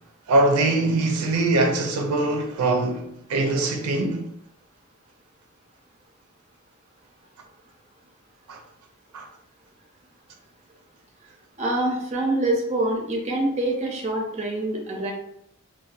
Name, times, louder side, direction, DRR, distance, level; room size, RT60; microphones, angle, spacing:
voice 1, 0.3-4.3 8.5-8.6 9.1-9.3, right 2 dB, 90° right, 0.4 m, -22 dB
voice 2, 11.6-15.1, right 1 dB, 30° right, 0.5 m, -25 dB
2.6 x 2.2 x 2.4 m
head